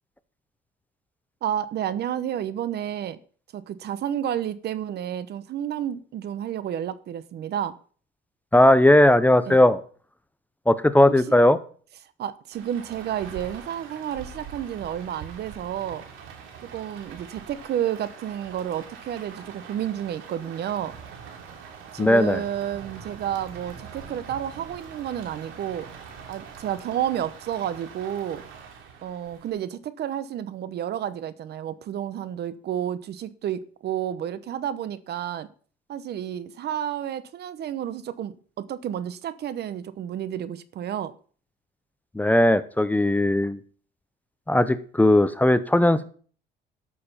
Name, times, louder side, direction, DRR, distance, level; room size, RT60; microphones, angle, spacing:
voice 1, 1.4-3.2 3.5-7.8 9.5-9.6 11.1-11.2 12.2-16.0 16.7-20.9 21.9-25.9 26.3-28.4 29.0-35.5 35.9-41.1, right 10 dB, 55° right, 15 dB, 0.9 m, -31 dB
voice 2, 8.5-9.8 10.7-11.6 22.0-22.4 42.1-43.6 44.5-46.0, left 1 dB, 10° left, 13 dB, 0.6 m, -18 dB
Rain, 12.5-29.5, right 6 dB, 80° right, 2.9 m, -43 dB
12.0 x 6.8 x 5.6 m, 0.44 s
cardioid pair, 115°, 20 cm